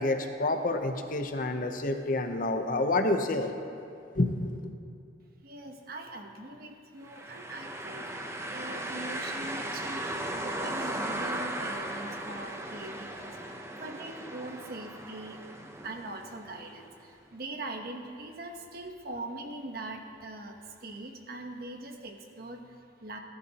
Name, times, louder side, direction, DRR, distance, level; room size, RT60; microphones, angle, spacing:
voice 1, 0.0-3.5 4.1-4.6, left 2 dB, 50° left, 6 dB, 0.8 m, -28 dB
voice 2, 5.4-23.2, right 2 dB, 55° right, 4 dB, 1.1 m, -42 dB
sound 1, 7.1-16.9, right 1 dB, 15° right, 0.7 m, -37 dB
18.5 x 11.5 x 2.9 m, 2.6 s
head